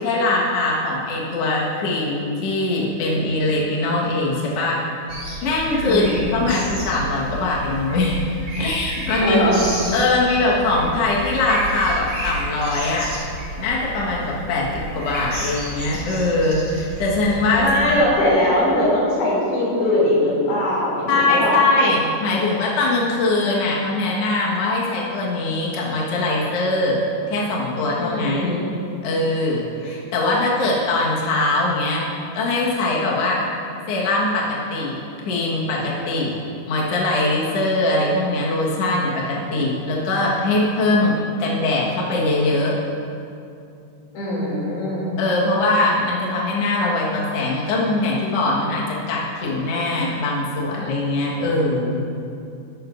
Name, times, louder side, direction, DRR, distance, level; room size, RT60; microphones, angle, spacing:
voice 1, 0.0-4.8 5.4-6.0 6.3-8.3 8.6-9.4 9.9-13.1 13.6-17.9 21.1-27.0 27.3-28.5 29.0-32.1 32.3-33.4 33.9-35.0 35.3-36.3 36.7-42.8 45.2-52.0, left 2 dB, 50° left, -4 dB, 2.1 m, -21 dB
sound 1, 5.1-18.0, right 1 dB, 30° right, 2.1 m, -31 dB
voice 2, 5.8-6.3 9.2-9.6 17.6-21.5 27.9-28.7 44.1-45.2, left 1 dB, 90° left, -6 dB, 4.8 m, -21 dB
13.0 x 12.5 x 2.6 m, 2.6 s
omnidirectional pair, 4.2 m